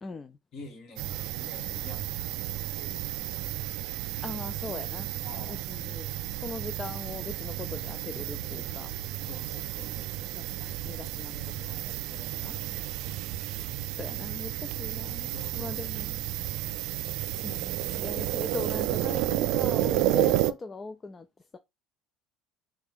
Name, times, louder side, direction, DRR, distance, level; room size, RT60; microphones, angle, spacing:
voice 1, 0.0-0.4 4.2-5.1 5.5-6.1 6.4-8.9 10.3-12.5 13.9-16.3 17.3-21.6, left 3 dB, 20° left, 0.3 m, -40 dB
voice 2, 0.5-2.3 2.7-3.3 5.2-5.7 9.2-10.4 12.5-12.9 15.3-15.8, left 2 dB, 45° left, 1.8 m, -47 dB
sound 1, 1.0-20.5, right 13 dB, 70° right, 0.3 m, -32 dB
4.2 x 2.4 x 3.5 m
cardioid pair, 125°, 0 cm